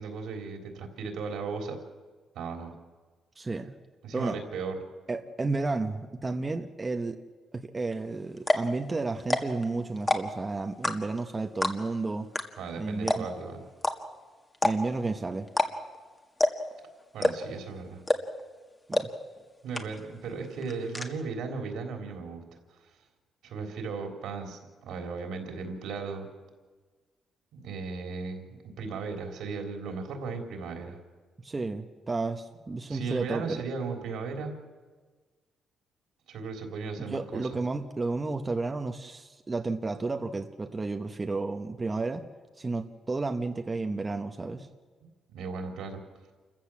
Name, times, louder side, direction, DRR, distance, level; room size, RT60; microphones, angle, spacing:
voice 1, 0.0-1.8 2.4-2.7 4.0-4.8 12.6-13.6 17.1-18.0 19.6-22.4 23.4-26.3 27.5-31.0 32.9-34.5 36.3-37.6 45.3-46.0, right 4 dB, 80° right, 3 dB, 3.7 m, -36 dB
voice 2, 3.4-3.7 4.1-4.4 5.1-7.2 7.5-12.3 12.8-13.3 14.6-15.5 18.9-19.1 31.4-33.6 37.1-42.2 42.6-44.7, right 3 dB, 20° right, 5 dB, 1.1 m, -32 dB
sound 1, 7.9-8.0 8.4-8.7 9.2-9.6 10.0-10.4 10.8-11.2 11.6-12.0 12.3-12.4 12.7-12.8 13.1-13.4 13.8-13.9 14.5-15.0 15.5-15.7 15.9-16.0 16.4-16.7 17.2-17.6 18.1-18.4 18.9-19.0 19.4-19.5 19.7-20.2 20.4-21.1, left 2 dB, 20° left, 1.8 m, -26 dB
28.5 x 15.0 x 7.4 m, 1.4 s
cardioid pair, 115°, 0 cm